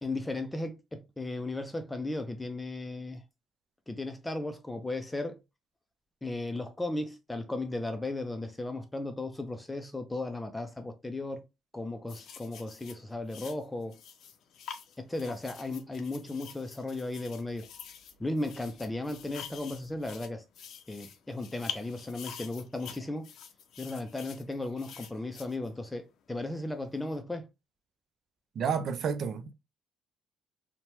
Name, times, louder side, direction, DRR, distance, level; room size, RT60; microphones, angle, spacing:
voice 1, 0.0-3.2 3.9-5.4 6.2-11.4 11.7-13.9 15.0-17.7 18.2-20.4 20.9-23.3 23.8-27.5, left 2 dB, 15° left, 0.4 m, -36 dB
sound 1, 12.1-26.1 27.0-27.2, left 8 dB, 65° left, 0.5 m, -47 dB
voice 2, 28.6-29.5, right 6 dB, 60° right, 0.4 m, -30 dB
2.9 x 2.1 x 2.8 m
cardioid pair, 85°, 0 cm